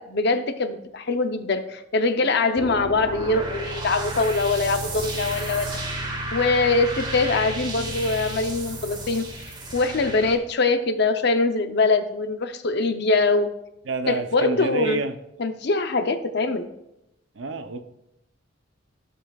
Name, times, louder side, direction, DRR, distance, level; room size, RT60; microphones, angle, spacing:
voice 1, 0.0-5.8 6.3-9.2 9.7-13.5 14.1-15.0 15.4-16.7, left 3 dB, 55° left, 9 dB, 0.6 m, -23 dB
sound 1, 2.5-10.4, right 1 dB, 25° right, 1.1 m, -32 dB
voice 2, 13.9-15.1 17.4-17.8, right 3 dB, 70° right, 8 dB, 0.7 m, -28 dB
14.5 x 5.5 x 2.3 m, 0.86 s
head